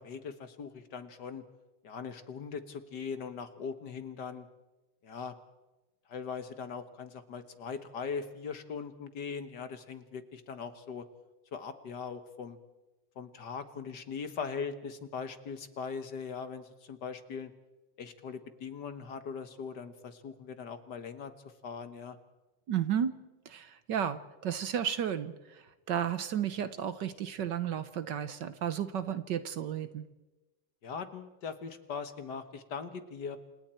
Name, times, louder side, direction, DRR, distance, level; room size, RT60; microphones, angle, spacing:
voice 1, 0.0-1.4 1.8-4.5 5.0-5.4 6.1-11.1 11.5-12.6 13.1-17.5 18.0-21.3 21.6-22.2 30.8-33.4, left 6 dB, 55° left, 10 dB, 1.8 m, -40 dB
voice 2, 22.7-23.2 23.5-30.1, right 9 dB, 60° right, 12 dB, 1.4 m, -33 dB
28.0 x 26.5 x 4.4 m, 1.1 s
omnidirectional pair, 2.3 m